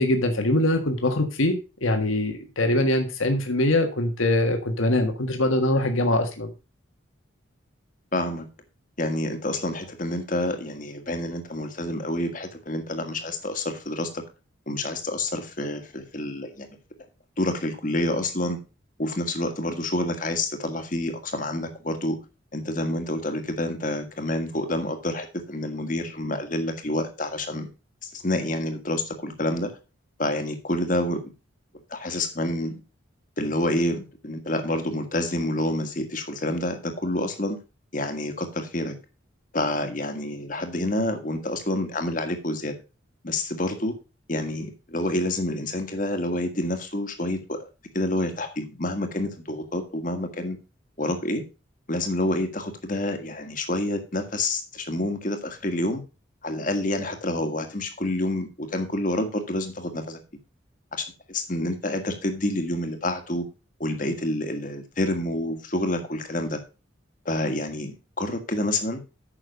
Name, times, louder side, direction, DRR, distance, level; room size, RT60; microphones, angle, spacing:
voice 1, 0.0-1.5 1.8-6.5, left 1 dB, 80° left, 5 dB, 1.7 m, -23 dB
voice 2, 8.1-8.5 9.0-14.2 14.7-16.7 17.4-18.6 19.0-22.2 22.5-27.7 28.0-29.7 30.2-31.2 31.9-32.8 33.4-37.6 37.9-38.9 39.5-42.7 43.2-43.9 44.3-47.6 47.9-50.6 51.0-51.4 51.9-56.0 56.4-60.2 60.9-63.4 63.8-66.6 67.2-69.0, left 1 dB, 40° left, 7 dB, 1.6 m, -28 dB
9.1 x 6.4 x 5.3 m, 0.30 s
head